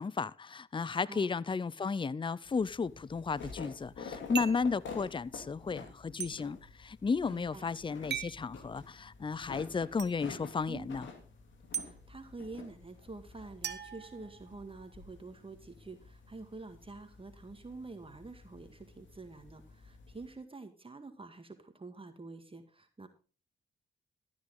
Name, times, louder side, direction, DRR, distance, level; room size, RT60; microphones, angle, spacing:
voice 1, 0.0-11.1, left 5 dB, 25° left, 0.6 m, -34 dB
sound 1, 2.5-20.3, left 5 dB, 75° left, 2.4 m, -50 dB
sound 2, 4.3-4.7 6.2-6.3 8.1-8.4 10.0-10.1 11.7-11.9 13.6-14.7, right 9 dB, 60° right, 1.0 m, -38 dB
voice 2, 7.3-7.7 10.7-10.9 11.8-23.1, right 3 dB, 25° right, 1.9 m, -47 dB
13.0 x 9.6 x 3.8 m
supercardioid pair, 50°, 20 cm